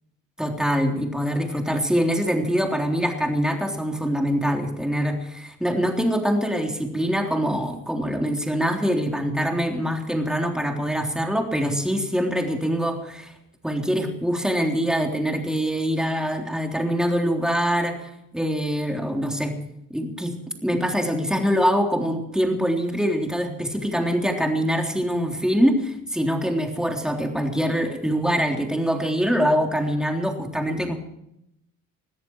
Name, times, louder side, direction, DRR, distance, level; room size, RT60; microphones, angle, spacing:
voice 1, 0.4-13.3 13.6-19.5 19.9-20.4 20.6-30.9, equal, ahead, 2 dB, 3.5 m, -24 dB
21.5 x 14.0 x 4.7 m, 0.81 s
cardioid pair, 90°, 30 cm